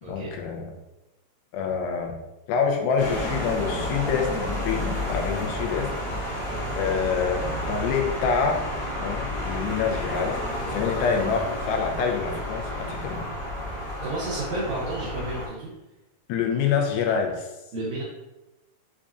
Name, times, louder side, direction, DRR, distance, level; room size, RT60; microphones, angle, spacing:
voice 1, 0.0-0.7 1.5-2.2 2.5-5.9 6.8-8.6 9.0-10.4 10.7-13.3 16.3-17.5, left 6 dB, 85° left, 2 dB, 2.4 m, -26 dB
sound 1, 3.0-15.5, left 1 dB, 55° left, 1.6 m, -31 dB
voice 2, 14.0-15.7 17.7-18.0, right 2 dB, 80° right, -7 dB, 1.7 m, -31 dB
6.0 x 2.3 x 2.5 m, 0.99 s
omnidirectional pair, 4.2 m